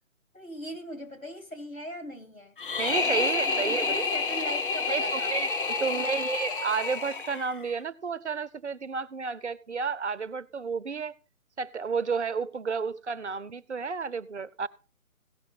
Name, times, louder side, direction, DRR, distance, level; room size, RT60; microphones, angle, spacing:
voice 1, 0.3-2.6 3.0-5.3 5.7-6.2, equal, 85° left, 4.5 m, -40 dB
sound 1, 2.6-7.7, left 4 dB, 40° left, 0.8 m, -29 dB
voice 2, 2.8-4.1 4.9-5.5 5.8-11.1 11.6-14.7, right 5 dB, 55° right, 0.9 m, -31 dB
17.0 x 6.4 x 4.1 m
figure-of-eight pair, 140°, 40 cm